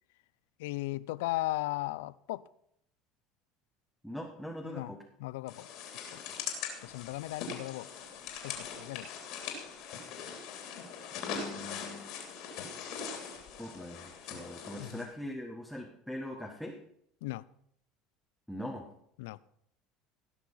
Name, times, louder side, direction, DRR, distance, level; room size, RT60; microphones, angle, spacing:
voice 1, 0.6-2.4 4.7-4.9 5.2-5.7 6.8-7.9 8.4-9.1 14.8-15.0 17.2-17.4 19.2-19.4, left 18 dB, 80° left, 0.4 m, -36 dB
voice 2, 4.0-5.0 11.1-12.4 13.6-16.8 18.5-18.9, left 1 dB, ahead, 1.6 m, -42 dB
sound 1, 5.5-15.0, left 6 dB, 65° left, 3.1 m, -41 dB
17.5 x 6.0 x 5.6 m
supercardioid pair, 95°, 0 cm